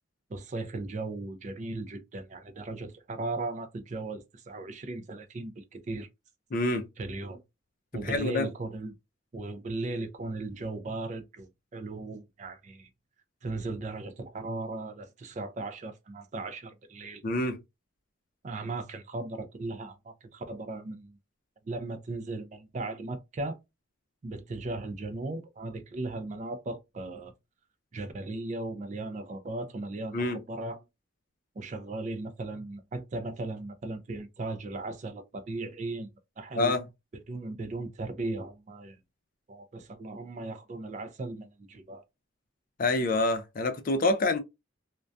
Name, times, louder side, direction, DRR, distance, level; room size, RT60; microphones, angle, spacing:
voice 1, 0.3-6.1 7.0-7.4 7.9-8.9 9.3-12.9 13.4-17.2 18.4-21.1 21.7-23.6 24.2-27.3 27.9-30.8 31.6-36.1 36.4-36.8 37.3-39.0 39.5-42.0, right 2 dB, 35° right, 0.3 m, -37 dB
voice 2, 6.5-6.9 8.0-8.5 17.2-17.6 30.1-30.4 36.6-36.8 42.8-44.4, left 2 dB, 40° left, 0.4 m, -27 dB
2.2 x 2.2 x 2.5 m
head